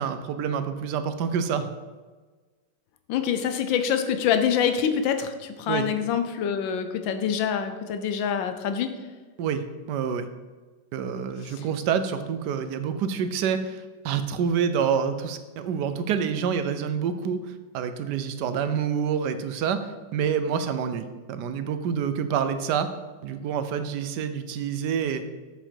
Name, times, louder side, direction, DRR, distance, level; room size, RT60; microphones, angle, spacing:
voice 1, 0.0-1.7 5.7-5.9 9.4-10.3 10.9-19.8 20.1-22.9 23.2-25.2, right 7 dB, 70° right, 10 dB, 1.2 m, -27 dB
voice 2, 3.1-8.9 11.5-11.6, left 8 dB, 85° left, 8 dB, 1.5 m, -25 dB
7.4 x 6.9 x 4.5 m, 1.3 s
omnidirectional pair, 2.0 m